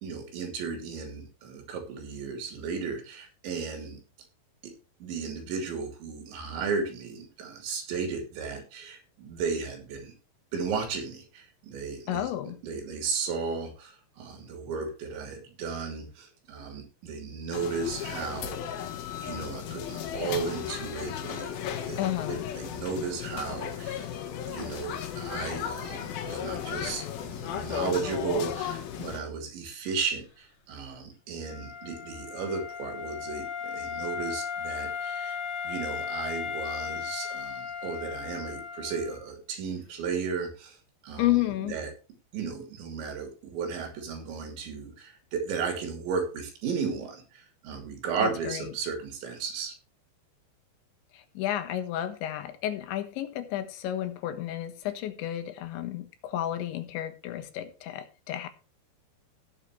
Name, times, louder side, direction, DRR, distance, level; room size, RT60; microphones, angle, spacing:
voice 1, 0.0-4.0 4.6-4.7 5.0-10.1 10.5-12.3 12.6-18.9 19.2-21.6 21.8-24.2 24.5-35.4 35.6-40.8 41.0-41.9 42.3-49.8, right 5 dB, 80° right, 5.2 m, -35 dB
voice 2, 12.1-12.6 22.0-22.4 41.2-41.8 48.2-48.7 51.1-58.5, left 13 dB, 90° left, 3.6 m, -31 dB
sound 1, 17.5-29.2, left 9 dB, 70° left, 2.7 m, -35 dB
Wind instrument woodwind instrument, 31.4-39.2, left 7 dB, 40° left, 2.7 m, -36 dB
17.5 x 7.4 x 3.2 m
omnidirectional pair, 5.2 m